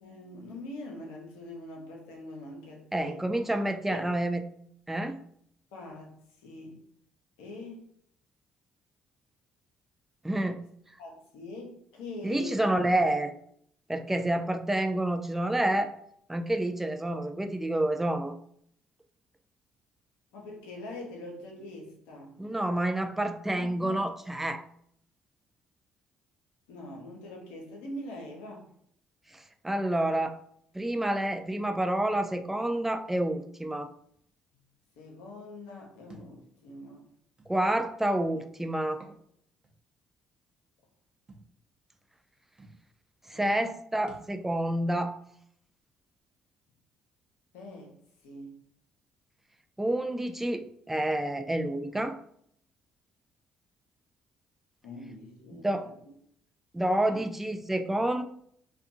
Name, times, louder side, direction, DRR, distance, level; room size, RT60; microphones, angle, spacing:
voice 1, 0.0-3.2 3.9-4.0 5.7-6.1 6.4-6.8 7.4-7.9 11.0-12.7 20.3-22.3 23.5-24.1 26.7-28.7 35.0-37.1 43.3-43.8 47.5-47.9 48.2-48.6 54.8-55.9 57.1-57.2, left 2 dB, 85° left, 0 dB, 0.7 m, -43 dB
voice 2, 2.9-4.4 4.9-5.2 10.2-10.6 12.2-13.3 13.9-16.0 16.3-18.4 22.4-24.6 29.3-30.4 30.7-33.9 37.5-39.0 43.3-45.2 49.8-52.2 55.5-55.9 56.7-58.2, right 1 dB, 10° right, 7 dB, 0.3 m, -28 dB
Thump thud, 36.1-36.3 37.4-37.5 38.9-39.2 39.6-39.7 41.3-41.5 42.3-42.4 42.6-42.8 44.1-44.4, right 3 dB, 35° right, 0.7 m, -50 dB
2.5 x 2.3 x 2.6 m, 0.67 s
hypercardioid pair, 55°, 3 cm